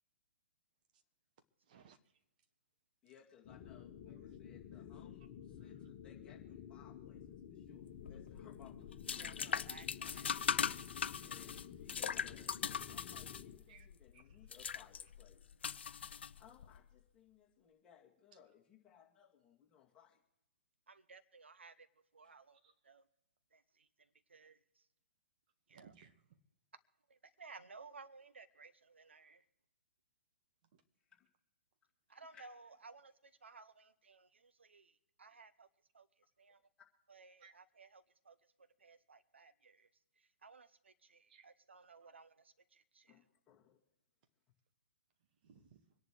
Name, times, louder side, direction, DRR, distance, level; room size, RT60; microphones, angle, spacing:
voice 1, 1.6-2.2 4.3-4.4 5.6-5.9 13.7-13.9 14.1-14.3 18.3-18.4 22.6-22.7 25.7-26.4 30.7-30.8 37.4-37.6 41.3-41.5 42.0-42.1 45.4-45.9, right 7 dB, 45° right, 8 dB, 1.5 m, -64 dB
voice 2, 3.0-9.6 11.2-15.5 16.4-20.2 22.2-22.3 31.1-31.3 32.1-32.5 43.1-43.8 45.5-45.6, left 9 dB, 15° left, -3 dB, 2.4 m, -64 dB
sound 1, 3.4-13.6, left 9 dB, 40° left, 1.4 m, -52 dB
sound 2, 7.9-16.8, left 7 dB, 65° left, 0.6 m, -40 dB
voice 3, 9.2-10.4 20.9-21.9 22.1-23.0 23.5-23.9 24.3-24.8 25.7-25.9 27.1-29.4 32.1-35.7 35.9-36.1 36.4-36.6 37.1-39.9 40.2-43.2, right 4 dB, 75° right, 13 dB, 0.8 m, -59 dB
26.0 x 11.0 x 3.2 m, 0.92 s
figure-of-eight pair, 125°, 6 cm